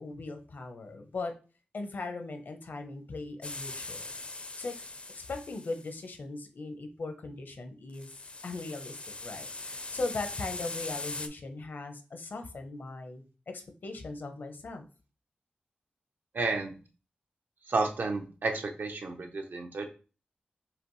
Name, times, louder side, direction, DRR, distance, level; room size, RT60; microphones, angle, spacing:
voice 1, 0.0-1.3 1.7-4.1 4.6-4.7 5.2-8.1 8.4-14.8, left 3 dB, 70° left, 6 dB, 0.8 m, -39 dB
sound 1, 3.4-5.9 7.9-11.3, left 2 dB, 35° left, 0.5 m, -41 dB
voice 2, 16.3-16.8 17.7-19.9, right 3 dB, 70° right, 4 dB, 0.8 m, -31 dB
5.0 x 3.0 x 3.1 m, 0.36 s
wide cardioid pair, 110°, 3 cm